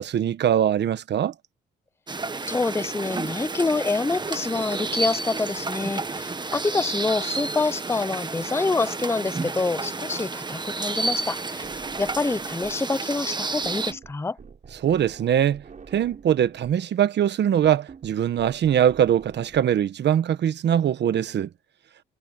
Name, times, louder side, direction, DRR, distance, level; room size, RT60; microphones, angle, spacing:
voice 1, 0.0-1.3 14.8-15.6 15.9-21.5, right 10 dB, 60° right, 1.3 m, -22 dB
sound 1, 2.1-13.9, right 3 dB, 20° right, 1.2 m, -31 dB
voice 2, 2.4-11.7 12.0-14.4, left 3 dB, 10° left, 0.6 m, -26 dB
sound 2, 11.6-12.9 13.2-19.6, right 6 dB, 40° right, 4.6 m, -46 dB
cardioid pair, 90°, 20 cm